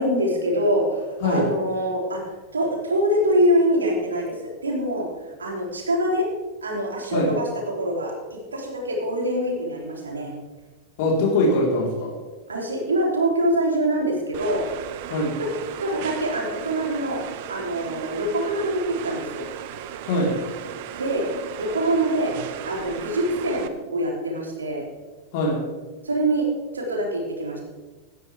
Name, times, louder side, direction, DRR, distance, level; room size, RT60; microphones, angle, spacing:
voice 1, 0.0-2.2 2.5-5.1 5.4-6.3 6.6-10.3 12.5-14.6 15.4-15.5 15.8-17.2 17.5-19.5 20.9-21.3 21.6-22.3 22.7-24.8 26.0-26.5 26.7-27.6, right 1 dB, 75° right, -1 dB, 3.5 m, -24 dB
voice 2, 11.0-12.2 15.1-15.4 20.0-20.4 25.3-25.6, left 1 dB, 50° left, -2 dB, 4.3 m, -22 dB
sound 1, 14.3-23.7, right 10 dB, 50° right, 1.0 m, -36 dB
17.5 x 12.5 x 3.6 m, 1.3 s
figure-of-eight pair, 90°, 0 cm